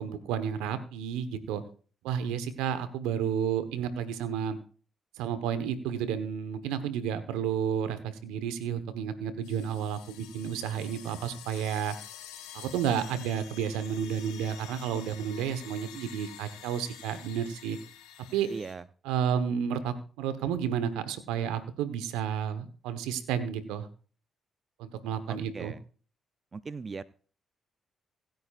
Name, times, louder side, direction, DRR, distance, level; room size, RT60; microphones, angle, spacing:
voice 1, 0.0-1.6 2.0-4.6 5.2-12.0 12.5-17.8 18.3-18.5 19.0-23.9 24.8-25.7, right 8 dB, 80° right, 12 dB, 1.1 m, -31 dB
sound 1, 9.4-18.7, left 10 dB, 85° left, 2.9 m, -48 dB
voice 2, 18.5-18.8 25.3-25.8 26.5-27.0, right 4 dB, 40° right, 15 dB, 0.6 m, -39 dB
25.5 x 9.2 x 2.5 m, 0.41 s
hypercardioid pair, 45°, 0 cm